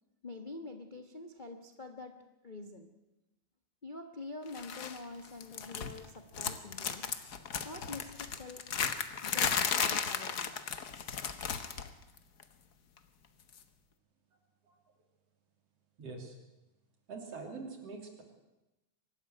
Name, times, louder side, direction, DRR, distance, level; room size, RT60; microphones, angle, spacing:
voice 1, 0.2-2.2 2.4-2.9 3.8-7.1 7.6-8.6 9.2-10.6, left 2 dB, 80° left, 6 dB, 0.4 m, -46 dB
Parer bag Foley manipulating, 4.6-5.0 5.3-6.1 6.3-11.9 12.2-12.4 13.5-13.6, left 7 dB, 55° left, 1.1 m, -34 dB
voice 2, 16.0-16.4 17.1-18.2, right 4 dB, 55° right, 4 dB, 4.1 m, -44 dB
23.0 x 13.0 x 9.9 m, 0.99 s
omnidirectional pair, 3.4 m